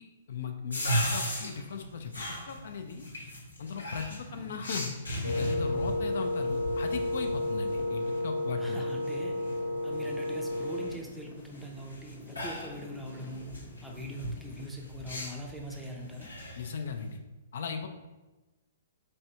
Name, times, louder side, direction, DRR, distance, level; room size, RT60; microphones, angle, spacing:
voice 1, 0.0-3.1 3.6-4.9 5.2-8.9 16.6-17.2 17.5-17.9, left 6 dB, 55° left, 5 dB, 0.3 m, -38 dB
sound 1, 0.7-17.2, equal, 75° left, 0.9 m, -38 dB
voice 2, 4.3-4.7 8.6-9.4 9.8-16.3, equal, 5° right, 0 dB, 0.5 m, -42 dB
sound 2, 5.1-14.7, left 2 dB, 25° left, 0.8 m, -51 dB
Wind instrument woodwind instrument, 5.2-11.0, left 2 dB, 75° right, 0.6 m, -32 dB
4.4 x 3.1 x 2.7 m, 1.1 s
figure-of-eight pair, 115°, 0 cm